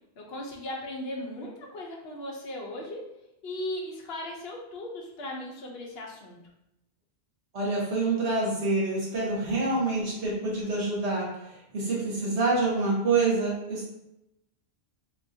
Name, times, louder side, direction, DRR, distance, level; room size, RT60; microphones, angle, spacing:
voice 1, 0.2-3.0 3.4-6.4, left 1 dB, 65° left, 0 dB, 0.9 m, -37 dB
voice 2, 7.5-11.3 11.7-13.9, right 3 dB, 90° right, -5 dB, 1.3 m, -26 dB
3.6 x 2.5 x 2.6 m, 0.86 s
omnidirectional pair, 1.1 m